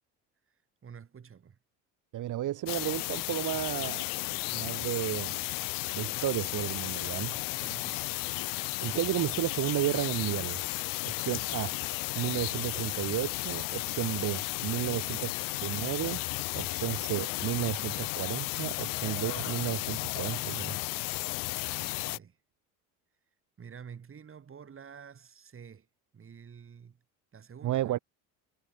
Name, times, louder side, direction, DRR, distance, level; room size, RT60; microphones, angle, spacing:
voice 1, 0.8-1.6 7.5-8.1 14.8-15.2 16.7-16.8 18.8-18.9 20.7-20.8 21.6-22.4 23.6-25.9 26.1-27.0 27.3-28.0, right 7 dB, 35° right, 5.3 m, -49 dB
voice 2, 2.1-4.1 4.5-5.4 5.9-7.5 8.8-10.6 11.0-11.7 12.2-15.3 15.6-16.2 16.5-20.8 27.6-28.0, right 13 dB, 55° right, 2.0 m, -33 dB
sound 1, 2.7-22.2, left 24 dB, 65° left, 0.5 m, -34 dB
supercardioid pair, 85°, 36 cm